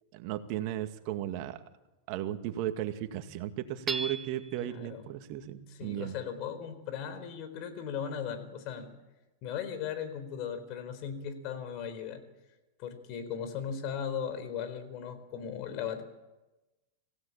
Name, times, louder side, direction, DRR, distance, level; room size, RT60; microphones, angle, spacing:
voice 1, 0.1-1.6 2.1-6.1, right 12 dB, 55° right, 7 dB, 2.0 m, -35 dB
Hammer / Chink clink, 3.9-4.7, right 3 dB, 20° right, 1.7 m, -36 dB
voice 2, 4.6-5.1 5.7-8.9 9.4-12.2 12.8-16.0, left 8 dB, 50° left, 10 dB, 4.3 m, -37 dB
26.0 x 16.5 x 8.8 m, 1.1 s
hypercardioid pair, 105°, 0 cm